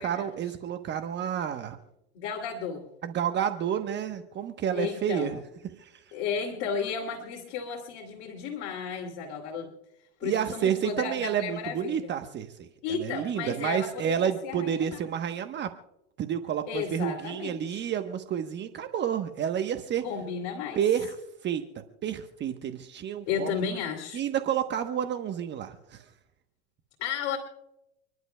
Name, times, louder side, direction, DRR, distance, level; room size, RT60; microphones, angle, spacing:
voice 1, 0.0-1.8 3.0-5.4 5.8-6.0 10.2-15.7 16.2-20.0 20.8-21.2 21.4-21.6 22.0-23.6 24.1-26.0, right 9 dB, 30° right, 7 dB, 1.1 m, -30 dB
voice 2, 2.1-2.8 4.7-5.3 6.1-9.7 10.2-12.1 12.8-15.0 16.7-17.9 20.0-20.8 23.3-24.2 27.0-27.4, left 6 dB, 50° left, 0 dB, 2.7 m, -33 dB
29.5 x 11.0 x 2.3 m, 0.88 s
hypercardioid pair, 95°, 34 cm